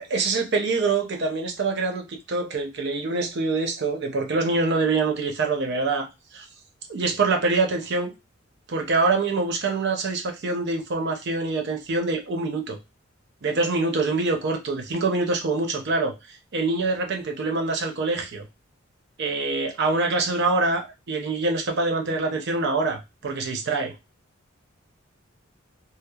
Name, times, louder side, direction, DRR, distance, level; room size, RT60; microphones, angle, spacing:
voice 1, 0.0-6.1 6.3-6.5 6.9-8.1 8.7-12.8 13.4-18.5 19.2-23.9, right 3 dB, 55° right, 3 dB, 0.6 m, -25 dB
2.8 x 2.0 x 2.2 m, 0.24 s
head